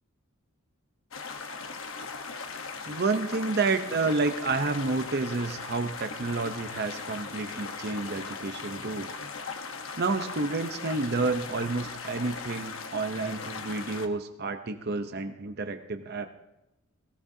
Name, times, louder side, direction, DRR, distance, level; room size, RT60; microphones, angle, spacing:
sound 1, 1.1-14.1, left 4 dB, 65° left, 1.1 m, -39 dB
voice 1, 2.9-9.1 10.0-16.3, right 3 dB, 50° right, 7 dB, 0.7 m, -30 dB
18.0 x 17.0 x 2.8 m, 0.91 s
head